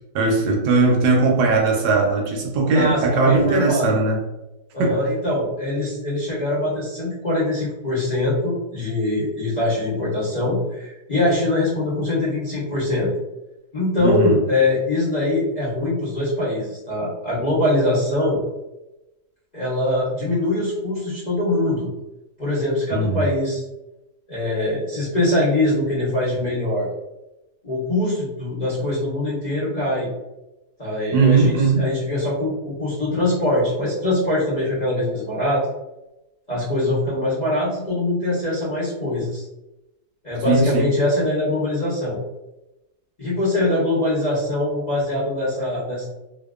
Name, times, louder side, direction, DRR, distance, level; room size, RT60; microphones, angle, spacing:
voice 1, 0.1-4.2 4.8-4.9 14.0-14.3 22.9-23.3 31.1-31.9 40.5-40.9, right 3 dB, 75° right, 1 dB, 1.1 m, -19 dB
voice 2, 2.7-3.9 4.7-13.1 13.7-18.4 19.5-21.9 22.4-23.6 24.3-26.9 27.6-30.1 30.8-35.6 36.5-39.4 40.2-42.2 43.2-46.1, left 1 dB, 50° left, -9 dB, 0.5 m, -22 dB
2.7 x 2.2 x 2.3 m, 0.97 s
omnidirectional pair, 1.9 m